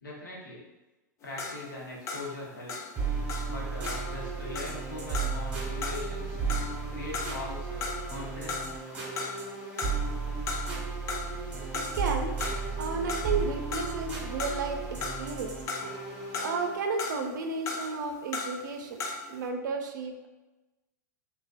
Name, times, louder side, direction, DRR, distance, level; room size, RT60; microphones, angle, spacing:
voice 1, 0.0-0.6 1.2-2.8 3.4-6.4 6.9-8.8, left 2 dB, 90° left, -4 dB, 0.9 m, -41 dB
sound 1, 1.2-8.2 8.5-9.5 9.8-10.8 11.1-19.4, left 4 dB, 30° left, 0.3 m, -37 dB
sound 2, 2.9-16.8, right 4 dB, 15° right, 1.1 m, -34 dB
voice 2, 11.6-12.4 12.8-15.6 16.1-19.0 19.3-20.3, right 4 dB, 75° right, 4 dB, 0.4 m, -33 dB
2.4 x 2.2 x 2.4 m, 1.1 s
hypercardioid pair, 110°, 10 cm